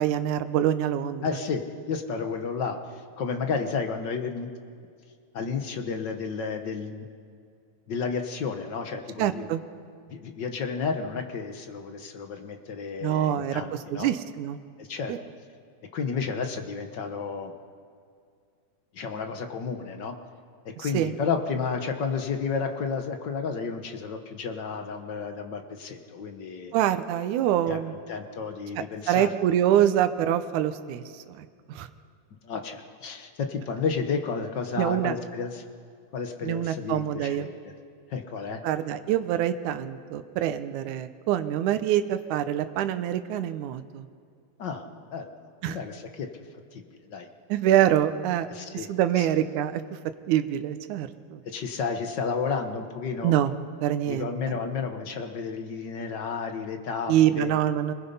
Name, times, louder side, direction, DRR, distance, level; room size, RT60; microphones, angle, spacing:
voice 1, 0.0-1.2 9.2-9.6 13.0-13.6 13.9-14.6 15.1-15.2 20.8-21.1 26.7-27.9 29.1-31.9 34.8-35.2 36.4-37.5 38.6-44.1 45.6-45.8 47.5-48.5 48.7-49.8 50.3-51.4 53.2-53.6 53.8-54.6 57.1-57.9, right 11 dB, 75° right, 9 dB, 2.2 m, -25 dB
voice 2, 1.2-4.5 5.3-7.1 7.9-9.5 10.1-14.1 14.8-15.1 15.9-17.5 18.9-20.2 20.8-26.7 27.7-27.8 28.1-29.3 32.4-35.6 36.1-37.5 38.1-38.6 44.6-45.3 45.7-46.4 46.7-47.3 48.5-48.9 49.2-49.3 51.4-53.3 54.1-57.6, left 5 dB, 55° left, 5 dB, 1.2 m, -32 dB
25.5 x 20.5 x 5.6 m, 2.2 s
omnidirectional pair, 3.6 m